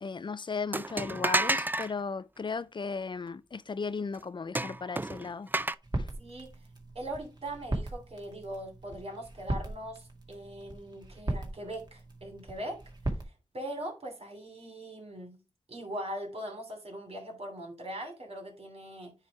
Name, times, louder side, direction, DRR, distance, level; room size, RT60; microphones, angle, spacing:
voice 1, 0.0-5.5 6.0-6.1, left 4 dB, 50° left, 0.4 m, -36 dB
sound 1, 0.7-1.9 4.5-5.7, right 2 dB, 20° right, 0.4 m, -30 dB
sound 2, 5.8-13.2, right 1 dB, 40° right, 2.0 m, -38 dB
voice 2, 6.2-6.5 6.9-12.8 13.5-15.4 15.7-19.1, right 1 dB, 70° right, 2.9 m, -40 dB
9.4 x 3.3 x 4.7 m
wide cardioid pair, 65°, 11 cm